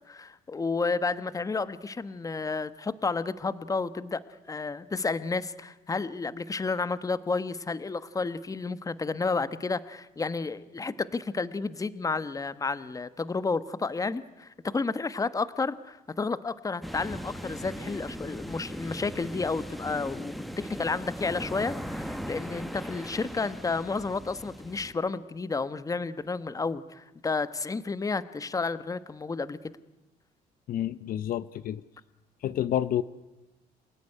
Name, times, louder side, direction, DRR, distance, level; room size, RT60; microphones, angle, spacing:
voice 1, 0.1-4.2 4.5-29.7, left 4 dB, 20° left, 15 dB, 1.2 m, -31 dB
sound 1, 16.8-24.9, equal, ahead, 1.6 m, -39 dB
voice 2, 30.7-31.8 32.4-33.0, left 11 dB, 60° left, 15 dB, 0.9 m, -29 dB
28.5 x 17.5 x 10.0 m, 1.0 s
cardioid pair, 110°, 17 cm